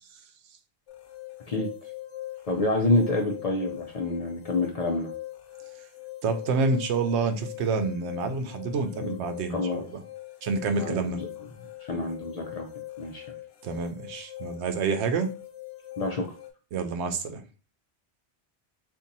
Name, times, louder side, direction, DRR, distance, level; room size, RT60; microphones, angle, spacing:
sound 1, 0.9-16.5, left 15 dB, 85° left, 0.9 m, -42 dB
voice 1, 2.5-5.1 9.0-9.2 9.5-9.8 10.8-11.3 11.8-12.7 13.0-13.2 16.0-16.3, left 2 dB, 50° left, 2 dB, 0.5 m, -27 dB
voice 2, 6.2-10.0 10.4-11.2 13.6-15.3 16.7-17.4, right 4 dB, 85° right, 7 dB, 0.9 m, -28 dB
2.8 x 2.6 x 3.8 m, 0.34 s
omnidirectional pair, 1.1 m